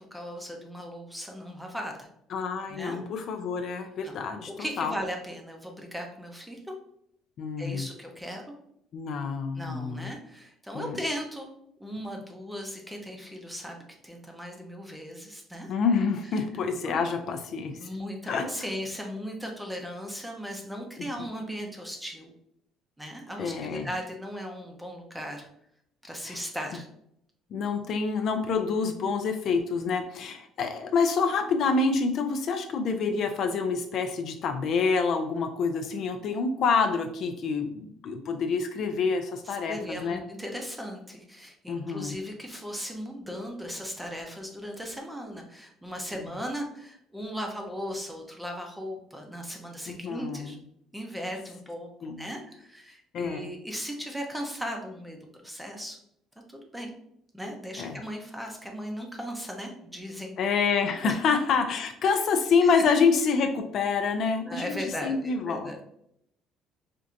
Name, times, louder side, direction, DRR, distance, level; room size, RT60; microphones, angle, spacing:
voice 1, 0.1-2.1 2.7-3.0 4.0-4.2 4.6-6.7 7.6-8.4 9.5-11.5 11.8-15.7 16.9-17.0 17.8-22.3 23.0-25.5 26.0-26.9 39.5-50.6 50.9-55.2 55.4-56.0 56.5-56.9 57.3-60.3 61.0-61.1 64.5-65.8, equal, 5° right, 2 dB, 0.6 m, -37 dB
voice 2, 2.3-4.9 7.4-7.9 8.9-10.1 10.7-11.0 15.7-17.9 18.3-18.4 21.0-21.3 23.4-23.9 26.2-26.4 27.5-40.2 41.7-42.1 46.1-46.3 49.9-50.6 52.0-52.3 53.1-53.5 57.8-58.0 60.4-65.7, left 5 dB, 50° left, 6 dB, 0.4 m, -27 dB
4.4 x 2.6 x 2.5 m, 0.74 s
cardioid pair, 135°, 0 cm